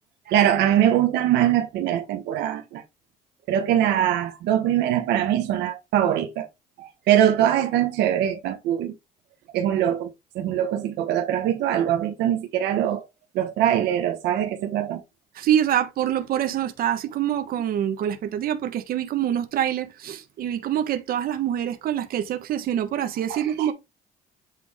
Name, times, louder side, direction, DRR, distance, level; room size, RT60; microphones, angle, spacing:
voice 1, 0.3-2.8 3.5-6.5 6.8-8.9 9.5-13.1 13.3-15.0 23.3-23.7, right 11 dB, 85° right, 1.1 m, -22 dB
voice 2, 15.3-23.7, right 10 dB, 60° right, 1.1 m, -25 dB
8.5 x 3.4 x 3.6 m
cardioid pair, 110°, 17 cm